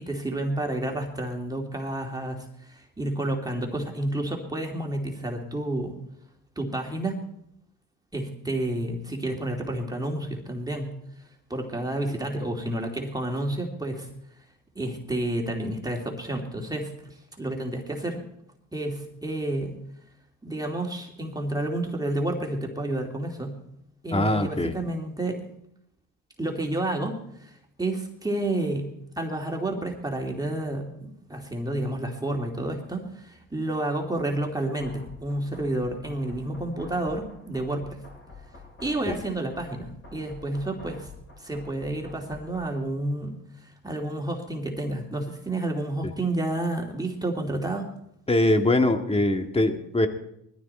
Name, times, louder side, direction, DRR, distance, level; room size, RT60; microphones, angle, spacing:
voice 1, 0.0-5.9 6.6-7.1 8.1-10.9 11.5-14.1 14.7-18.2 18.7-19.8 20.4-23.6 24.0-25.4 26.4-28.9 29.2-38.0 38.8-41.1 41.4-47.8, right 1 dB, 10° right, 1 dB, 2.8 m, -30 dB
voice 2, 24.1-24.8 39.1-39.2 46.0-46.1 48.3-50.1, left 1 dB, 15° left, 6 dB, 1.9 m, -22 dB
sound 1, 34.8-42.8, left 3 dB, 35° left, 7.3 m, -47 dB
20.5 x 14.5 x 4.4 m, 0.75 s
cardioid pair, 95°, 33 cm